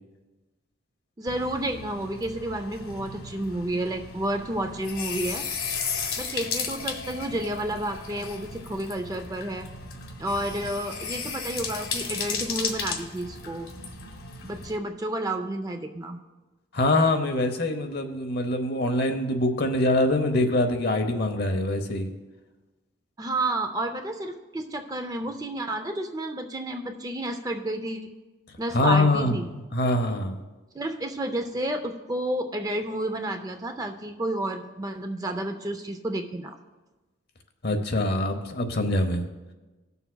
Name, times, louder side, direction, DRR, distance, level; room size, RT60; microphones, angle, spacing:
voice 1, 1.2-5.5 6.2-9.7 10.2-13.7 14.4-16.2 23.2-28.0 28.6-29.5 30.7-36.6, right 1 dB, 20° right, 6 dB, 0.4 m, -31 dB
sound 1, 1.3-14.8, left 5 dB, 90° left, 1.2 m, -35 dB
voice 2, 16.7-22.1 28.7-30.4 37.6-39.2, left 2 dB, 50° left, 5 dB, 0.8 m, -24 dB
18.5 x 6.9 x 2.3 m, 1.2 s
head